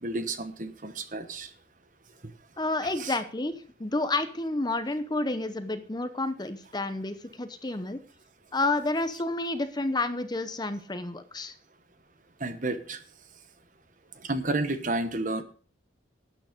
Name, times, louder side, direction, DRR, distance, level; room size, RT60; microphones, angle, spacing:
voice 1, 0.0-1.5 2.8-3.1 12.4-13.0 14.2-15.4, right 2 dB, 40° right, 10 dB, 1.1 m, -31 dB
voice 2, 2.6-3.5 3.8-8.0 8.5-11.5, left 2 dB, 20° left, 10 dB, 0.8 m, -30 dB
12.5 x 9.1 x 5.2 m, 0.42 s
head